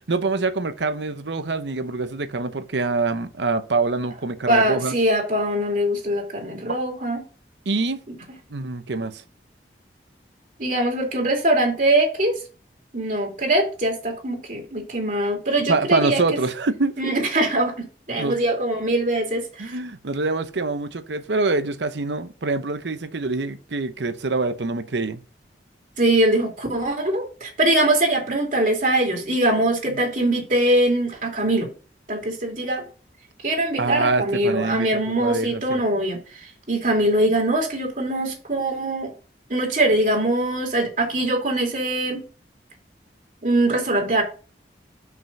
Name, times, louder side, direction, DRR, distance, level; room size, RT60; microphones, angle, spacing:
voice 1, 0.1-5.0 7.7-8.0 8.5-9.2 15.7-16.9 18.2-18.4 19.6-25.2 33.8-35.8, right 3 dB, 85° right, 0.8 m, -25 dB
voice 2, 4.5-7.2 10.6-12.4 12.9-16.2 17.0-19.8 26.0-31.7 32.1-32.8 33.4-39.1 39.5-42.2 43.4-44.2, right 1 dB, 45° right, 2.7 m, -22 dB
6.1 x 5.8 x 5.4 m
head